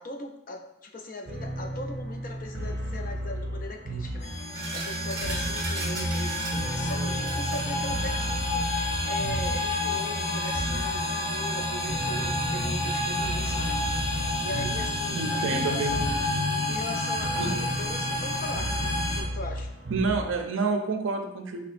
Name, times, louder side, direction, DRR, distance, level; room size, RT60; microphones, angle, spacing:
voice 1, 0.0-16.1 16.7-18.7 19.1-19.7, left 1 dB, 45° left, 2 dB, 0.4 m, -40 dB
sound 1, 1.3-20.6, right 1 dB, 65° right, 0.9 m, -35 dB
sound 2, 4.2-19.2, left 1 dB, 80° left, 1.2 m, -29 dB
sound 3, 4.5-9.7, right 2 dB, 20° right, 0.9 m, -38 dB
voice 2, 15.1-16.1 17.4-17.5 19.9-21.6, right 4 dB, 85° right, 5 dB, 0.5 m, -28 dB
4.9 x 2.9 x 2.5 m, 0.86 s
head